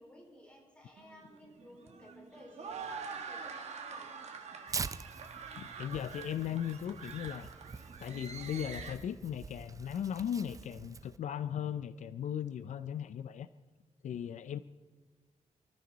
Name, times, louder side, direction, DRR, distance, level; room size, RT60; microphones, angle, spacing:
voice 1, 0.0-4.1, left 1 dB, 10° left, -3 dB, 4.8 m, -56 dB
sound 1, 1.0-8.9, right 5 dB, 60° right, 1.6 m, -46 dB
Tearing, 4.7-11.2, right 5 dB, 25° right, 0.4 m, -45 dB
voice 2, 5.6-7.5 8.0-13.5 14.0-14.6, left 9 dB, 70° left, 13 dB, 0.5 m, -37 dB
27.0 x 13.5 x 4.0 m, 1.3 s
wide cardioid pair, 180°, 13 cm